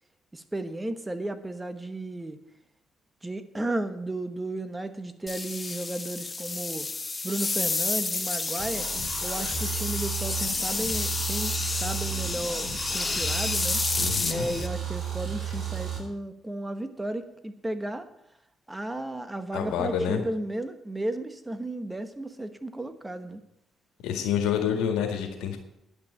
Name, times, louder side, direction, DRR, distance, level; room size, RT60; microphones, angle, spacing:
voice 1, 0.3-2.4 3.2-6.9 7.2-8.9 9.2-11.5 11.8-13.8 14.3-18.1 18.7-23.4, right 1 dB, 15° right, 10 dB, 1.2 m, -34 dB
sound 1, 5.3-14.7, left 3 dB, 25° left, 1.1 m, -30 dB
sound 2, 8.6-16.0, right 8 dB, 50° right, 4.3 m, -34 dB
voice 2, 14.0-14.5 19.5-20.2 24.0-25.6, left 8 dB, 85° left, 5 dB, 1.9 m, -28 dB
10.5 x 6.0 x 8.7 m, 0.80 s
cardioid pair, 75°, 0 cm